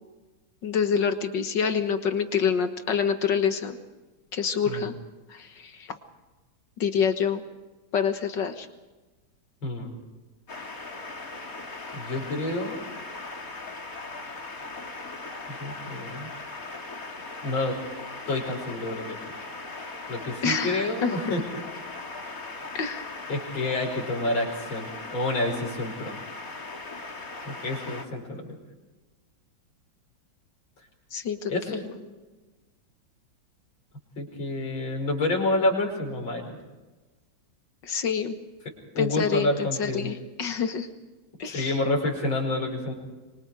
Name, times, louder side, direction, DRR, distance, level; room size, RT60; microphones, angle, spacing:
voice 1, 0.6-3.8 4.3-4.9 5.3-5.5 6.8-7.4 7.9-8.7 20.4-21.3 22.7-23.3 31.1-31.5 37.8-38.4 39.0-39.5 39.8-40.9 41.4-41.8, left 6 dB, 65° left, 8 dB, 2.0 m, -26 dB
voice 2, 9.6-9.9 11.9-12.8 15.5-16.3 17.4-17.8 18.3-19.2 20.1-21.4 23.3-26.2 27.5-28.6 31.5-31.8 34.2-36.5 38.9-40.1 41.5-42.9, left 2 dB, 80° left, 0 dB, 6.1 m, -28 dB
sound 1, 10.5-28.0, left 3 dB, 45° left, 3.0 m, -39 dB
26.0 x 24.5 x 5.0 m, 1.2 s
omnidirectional pair, 2.1 m